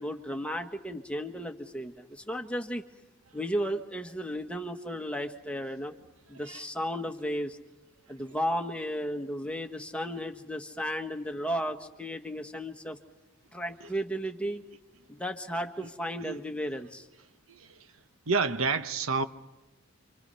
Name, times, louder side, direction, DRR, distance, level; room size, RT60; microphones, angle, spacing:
voice 1, 0.0-2.8 3.3-5.9 6.3-7.6 8.1-13.0 13.5-14.6 15.1-17.1, equal, 5° left, 1.5 m, -34 dB
voice 2, 18.3-19.2, right 4 dB, 85° right, 1.1 m, -27 dB
29.0 x 26.0 x 5.7 m
head